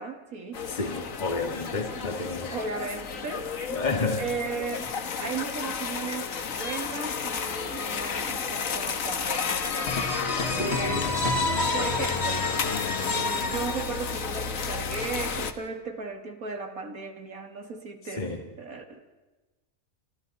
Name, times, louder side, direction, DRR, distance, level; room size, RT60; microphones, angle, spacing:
voice 1, 0.0-0.7 2.0-3.8 4.2-11.1 11.7-12.5 13.0-18.3 18.6-19.1, right 4 dB, 70° right, 5 dB, 2.6 m, -36 dB
sound 1, 0.5-15.5, left 6 dB, 65° left, 1.7 m, -33 dB
voice 2, 0.7-2.5 3.7-4.2 10.4-11.2 18.1-18.4, left 3 dB, 30° left, 3 dB, 2.2 m, -31 dB
sound 2, 9.9-14.5, left 3 dB, 45° left, 1.8 m, -28 dB
29.0 x 27.5 x 4.1 m, 1.2 s
omnidirectional pair, 1.5 m